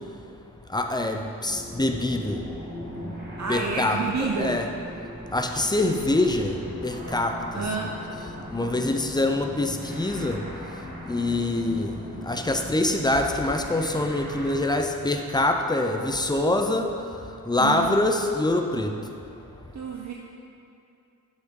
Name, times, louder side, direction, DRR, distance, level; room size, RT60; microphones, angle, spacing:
voice 1, 0.7-2.4 3.0-3.2 3.5-4.7 5.3-7.7 8.5-10.4 11.1-12.0 12.2-16.9 17.5-18.9, left 2 dB, 10° left, 4 dB, 0.5 m, -25 dB
sound 1, 1.4-14.5, left 1 dB, 25° right, 1.9 m, -39 dB
voice 2, 3.4-4.7 7.5-8.0 17.6-18.0 19.7-20.1, right 4 dB, 50° right, -1 dB, 0.7 m, -29 dB
11.5 x 6.4 x 3.8 m, 2.7 s
wide cardioid pair, 145°, 35 cm